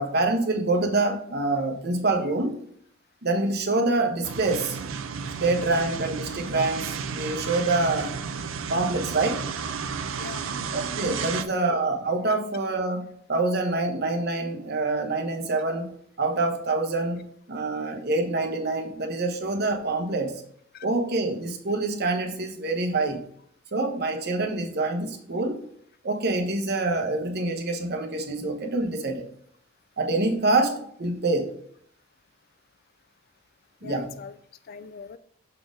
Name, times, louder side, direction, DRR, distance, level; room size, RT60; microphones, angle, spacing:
voice 1, 0.0-2.6 3.2-4.8 5.4-8.2 8.7-9.5 10.7-20.4 20.8-23.2 23.7-25.6 26.0-29.2 30.0-31.6 33.8-34.2, right 2 dB, 50° right, 4 dB, 1.1 m, -26 dB
sound 1, 4.2-11.4, right 6 dB, 70° right, 0.5 m, -32 dB
voice 2, 10.1-10.5 11.2-11.5 20.7-20.9 33.8-34.3 34.7-35.2, left 6 dB, 45° left, 13 dB, 0.3 m, -41 dB
6.7 x 4.1 x 3.7 m, 0.63 s
head